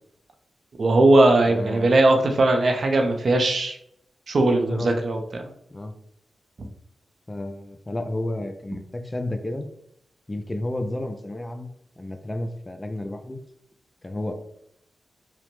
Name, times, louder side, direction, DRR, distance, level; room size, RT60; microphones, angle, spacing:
voice 1, 0.8-3.8 4.3-5.5, right 2 dB, 60° right, 4 dB, 0.5 m, -19 dB
voice 2, 1.4-1.9 4.5-4.9 5.7-5.9 7.3-9.7 10.3-13.4 14.0-14.3, left 1 dB, 30° left, 7 dB, 0.4 m, -31 dB
2.9 x 2.1 x 3.0 m, 0.71 s
supercardioid pair, 45°, 0 cm